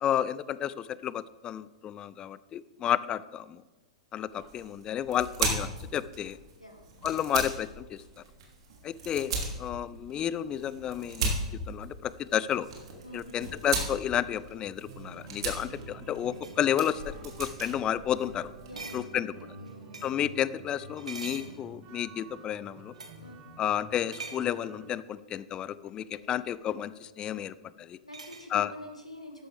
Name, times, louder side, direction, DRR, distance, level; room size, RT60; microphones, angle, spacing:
voice 1, 0.0-3.6 4.1-6.4 7.0-8.0 8.8-12.7 13.1-18.5 18.9-19.3 20.0-22.9 23.6-28.0 28.5-28.7, left 10 dB, 25° left, 18 dB, 0.4 m, -31 dB
sound 1, 4.3-18.9, right 3 dB, 55° right, 3.0 m, -37 dB
sound 2, 10.7-14.5 15.6-15.9 16.2-16.7 17.2-17.4 17.7-17.8 18.2-18.4 18.8-20.3 20.9-22.1 22.9-23.3 24.1-24.6 26.2-26.3 28.1-28.5, right 4 dB, 75° right, 1.4 m, -46 dB
voice 2, 13.0-13.3 18.7-19.3 19.6-20.0 23.2-23.4 26.1-26.3 28.0-29.5, left 1 dB, 90° left, 4 dB, 1.7 m, -46 dB
sound 3, 14.9-24.9, right 3 dB, 40° right, 1.9 m, -48 dB
13.5 x 11.0 x 3.4 m, 1.2 s
figure-of-eight pair, 100°, 3 cm